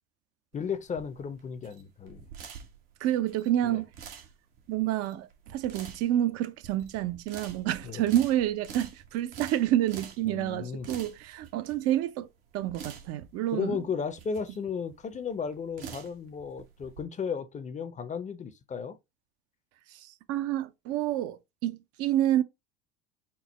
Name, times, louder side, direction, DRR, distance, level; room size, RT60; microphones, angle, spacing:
voice 1, 0.5-2.2 3.6-3.8 7.8-8.0 10.2-10.9 13.5-19.0, left 6 dB, 25° left, 0.6 m, -34 dB
sound 1, 0.5-17.0, right 7 dB, 75° right, 1.0 m, -47 dB
voice 2, 3.0-3.9 4.7-12.3 12.5-13.8 19.9-22.4, right 12 dB, 55° right, 0.6 m, -28 dB
4.4 x 2.0 x 4.1 m
hypercardioid pair, 75°, 29 cm